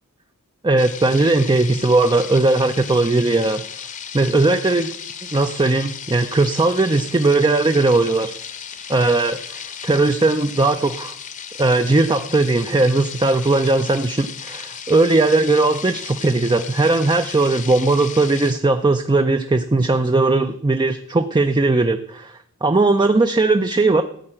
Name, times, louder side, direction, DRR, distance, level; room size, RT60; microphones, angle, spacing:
voice 1, 0.6-3.6 4.1-4.9 5.3-8.4 8.9-11.1 11.6-24.0, right 2 dB, 20° right, 8 dB, 0.5 m, -18 dB
sound 1, 0.8-18.5, left 8 dB, 35° left, 0.8 m, -35 dB
14.0 x 4.8 x 8.9 m, 0.65 s
head